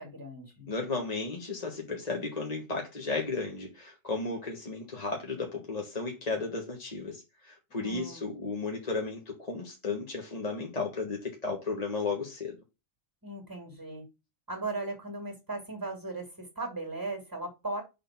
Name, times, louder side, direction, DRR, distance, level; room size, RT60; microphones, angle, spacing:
voice 1, 0.0-0.7 7.8-8.3 13.2-14.0 14.5-17.8, right 2 dB, 15° right, 2.3 m, -37 dB
voice 2, 0.7-12.5, left 3 dB, 30° left, 1.5 m, -34 dB
6.3 x 3.9 x 5.8 m
omnidirectional pair, 1.4 m